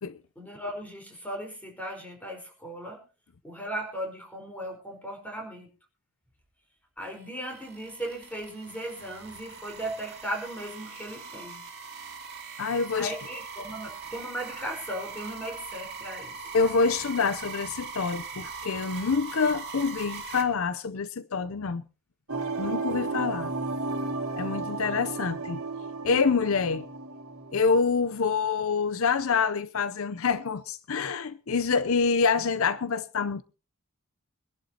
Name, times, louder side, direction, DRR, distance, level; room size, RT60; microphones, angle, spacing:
voice 1, 0.4-3.0 3.4-5.7 7.0-11.6 12.9-16.5 32.3-32.4, right 1 dB, 5° left, 4.4 m, -37 dB
sound 1, 7.0-20.4, right 5 dB, 45° right, 2.6 m, -41 dB
voice 2, 12.6-13.1 16.5-21.8 22.6-23.5 24.4-25.6 26.0-26.9 27.5-33.4, left 5 dB, 70° left, 0.6 m, -26 dB
sound 2, 22.3-28.2, right 3 dB, 80° right, 2.2 m, -33 dB
24.0 x 11.5 x 2.8 m
head